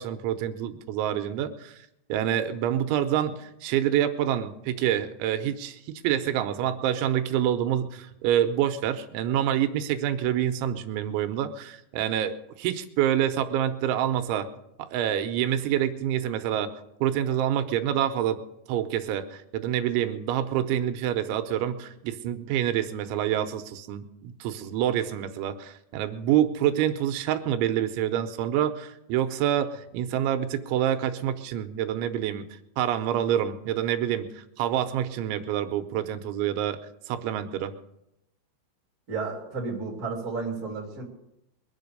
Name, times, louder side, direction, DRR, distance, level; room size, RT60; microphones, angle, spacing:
voice 1, 0.0-1.8 2.1-14.5 14.8-16.7 17.0-18.4 18.7-32.4 32.8-36.8 37.1-37.7, right 10 dB, 90° right, 9 dB, 3.1 m, -27 dB
voice 2, 39.1-41.0, right 4 dB, 25° right, -1 dB, 2.5 m, -32 dB
22.0 x 7.6 x 6.7 m, 0.85 s
omnidirectional pair, 5.4 m